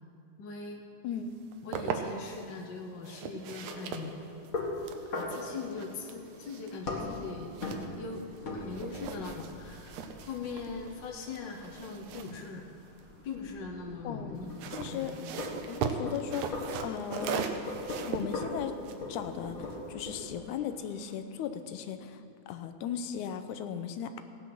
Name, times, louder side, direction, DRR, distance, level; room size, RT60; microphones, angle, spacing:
voice 1, 0.4-0.8 1.6-4.1 5.1-7.6 8.0-8.2 8.5-12.7 13.2-15.4, left 4 dB, 65° left, 2 dB, 1.1 m, -41 dB
sound 1, 1.3-2.5 3.0-8.4 8.7-13.4 14.4-19.9, right 7 dB, 80° right, 2.1 m, -39 dB
sound 2, 3.6-21.2, left 2 dB, 40° left, 1.5 m, -41 dB
voice 2, 14.0-14.4 14.8-15.2 15.7-17.5 18.1-18.7 19.1-22.2 22.5-24.2, left 8 dB, 90° left, 9 dB, 2.2 m, -37 dB
16.5 x 8.7 x 6.2 m, 2.4 s
omnidirectional pair, 3.4 m